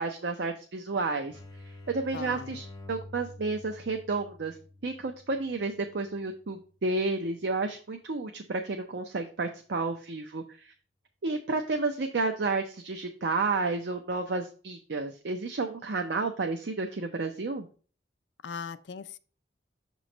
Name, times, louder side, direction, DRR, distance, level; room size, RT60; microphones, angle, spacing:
voice 1, 0.0-1.4 1.9-4.6 4.8-10.7 11.2-17.7, right 3 dB, 65° right, 0.6 m, -31 dB
sound 1, 1.3-6.8, left 2 dB, 20° left, 1.1 m, -49 dB
voice 2, 2.1-2.6 18.4-19.2, left 6 dB, 75° left, 0.4 m, -39 dB
6.7 x 3.1 x 5.1 m
head